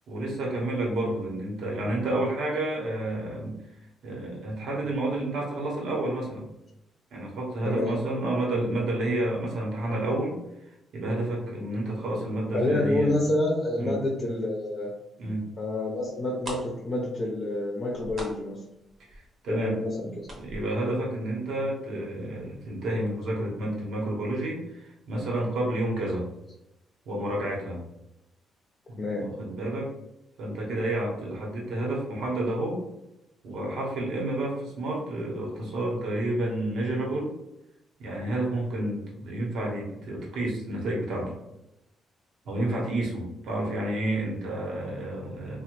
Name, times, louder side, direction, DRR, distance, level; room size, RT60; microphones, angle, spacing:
voice 1, 0.1-3.6 4.0-6.5 7.1-13.1 13.8-14.0 15.2-15.5 19.1-19.8 20.4-26.2 27.1-27.8 28.9-29.9 30.4-32.8 33.4-37.3 38.0-41.4 42.4-45.6, right 1 dB, 75° right, -2 dB, 1.0 m, -30 dB
voice 2, 12.5-14.9 15.6-18.6 19.5-20.3 29.0-29.3, left 2 dB, 35° left, -2 dB, 0.7 m, -28 dB
sound 1, 16.1-16.2 16.4-22.0 22.2-22.3 22.8-23.0 23.3-23.4, right 1 dB, 45° right, 1.0 m, -42 dB
3.1 x 2.2 x 3.0 m, 0.88 s
cardioid pair, 90°, 0 cm